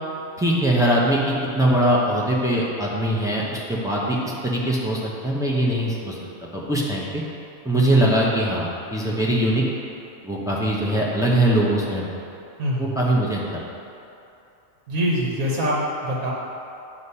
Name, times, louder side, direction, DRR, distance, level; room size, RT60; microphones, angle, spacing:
voice 1, 0.4-6.2 6.5-7.2 7.6-9.6 10.2-12.0 12.8-13.6, right 1 dB, 5° right, -5 dB, 0.4 m, -21 dB
voice 2, 12.6-13.0 14.9-16.3, equal, 75° right, -4 dB, 1.3 m, -24 dB
8.1 x 2.8 x 5.5 m, 2.7 s
omnidirectional pair, 1.5 m